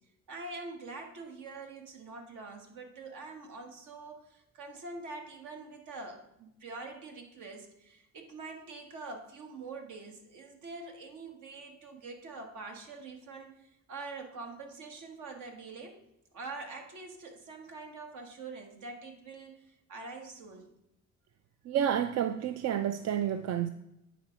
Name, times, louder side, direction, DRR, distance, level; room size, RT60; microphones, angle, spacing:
voice 1, 0.3-16.0 16.3-20.7, right 3 dB, 80° right, 1.6 m, -45 dB
voice 2, 21.7-23.7, right 9 dB, 60° right, 0.5 m, -30 dB
9.3 x 4.1 x 5.8 m
cardioid pair, 90°, 30 cm